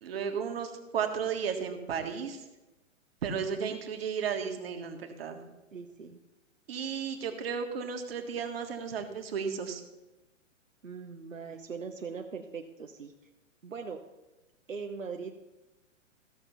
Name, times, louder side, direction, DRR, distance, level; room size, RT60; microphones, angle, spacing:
voice 1, 0.0-2.4 3.2-5.4 6.7-9.8, right 6 dB, 50° right, 5 dB, 1.8 m, -34 dB
voice 2, 3.3-3.8 5.7-6.2 10.8-13.1 13.6-14.0 14.7-15.4, right 5 dB, 75° right, 4 dB, 1.0 m, -41 dB
15.0 x 6.6 x 5.7 m, 1.0 s
figure-of-eight pair, 120°, 39 cm